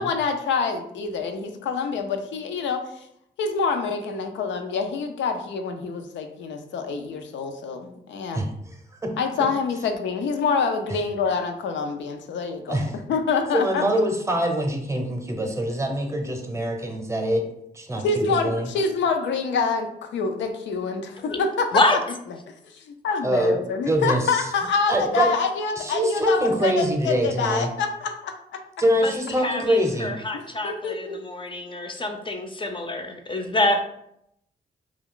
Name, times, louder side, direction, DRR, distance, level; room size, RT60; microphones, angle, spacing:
voice 1, 0.0-2.8 3.4-8.4 9.2-12.8 13.1-13.8 18.0-21.7 22.7-28.3 30.6-31.2, left 4 dB, 85° left, 6 dB, 0.4 m, -26 dB
voice 2, 8.3-8.8 9.0-9.1 12.7-12.9 13.5-17.5 17.7-18.7 23.2-23.6 23.9-24.5 24.9-25.3 25.8-27.7 28.8-30.1, right 1 dB, 15° right, 3 dB, 0.7 m, -24 dB
voice 3, 29.0-33.8, left 2 dB, 25° left, 5 dB, 0.5 m, -26 dB
2.3 x 2.3 x 3.6 m, 0.77 s
cardioid pair, 60°, 19 cm